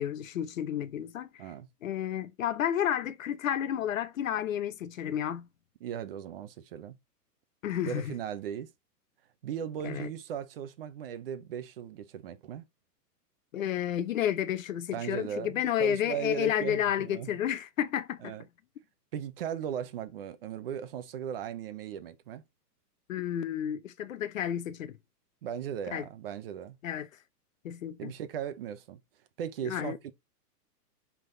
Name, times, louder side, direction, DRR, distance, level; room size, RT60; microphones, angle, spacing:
voice 1, 0.0-1.4 1.8-5.5 7.6-8.1 9.8-10.1 13.5-18.3 23.1-25.0 25.9-26.0 26.8-27.1 27.6-28.1 29.6-30.0, left 10 dB, 55° left, 1.0 m, -31 dB
voice 2, 5.8-7.0 7.8-8.7 9.4-12.6 14.9-17.3 18.2-18.4 19.1-22.4 25.4-26.8 28.0-29.0 29.4-30.1, right 9 dB, 35° right, 0.9 m, -37 dB
10.0 x 3.9 x 4.0 m
hypercardioid pair, 160°, 49 cm